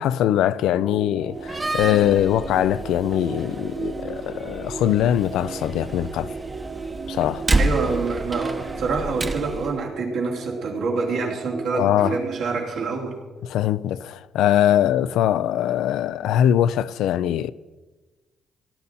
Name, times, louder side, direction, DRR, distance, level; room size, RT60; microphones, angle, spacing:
voice 1, 0.0-6.4 7.1-7.5 11.7-12.2 13.4-17.5, left 11 dB, 85° left, 0.4 m, -22 dB
sound 1, 0.7-12.6, right 4 dB, 45° right, 1.2 m, -35 dB
Slam, 1.3-9.8, right 2 dB, 20° right, 0.9 m, -30 dB
voice 2, 7.6-13.2, right 4 dB, 80° right, 3.0 m, -26 dB
17.5 x 10.5 x 4.2 m
cardioid pair, 90°, 0 cm